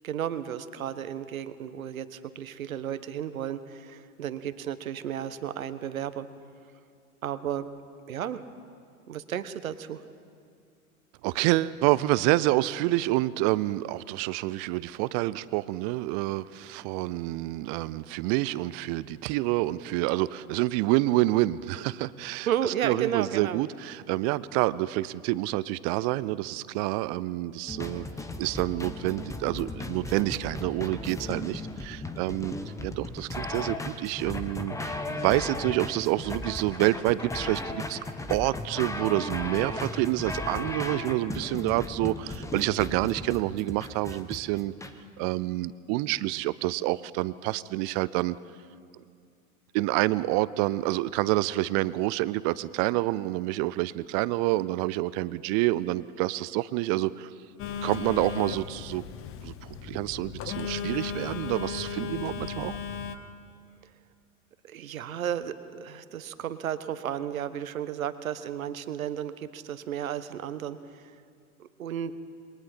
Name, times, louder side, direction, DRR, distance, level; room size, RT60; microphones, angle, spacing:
voice 1, 0.0-6.3 7.2-7.7 8.1-8.4 9.1-10.0 22.5-23.6 64.6-71.1 71.6-72.1, right 10 dB, 70° right, 13 dB, 1.2 m, -33 dB
voice 2, 11.2-28.0 28.4-32.5 32.8-38.0 38.3-44.7 45.2-48.3 49.7-57.3 57.8-59.0 59.4-59.5 59.8-62.8, right 18 dB, 30° right, 19 dB, 0.4 m, -28 dB
sound 1, 27.7-44.9, left 2 dB, 5° left, 1.2 m, -36 dB
Telephone, 57.6-63.2, left 7 dB, 30° left, 1.2 m, -36 dB
28.0 x 22.0 x 4.4 m, 2.3 s
figure-of-eight pair, 95°, 43 cm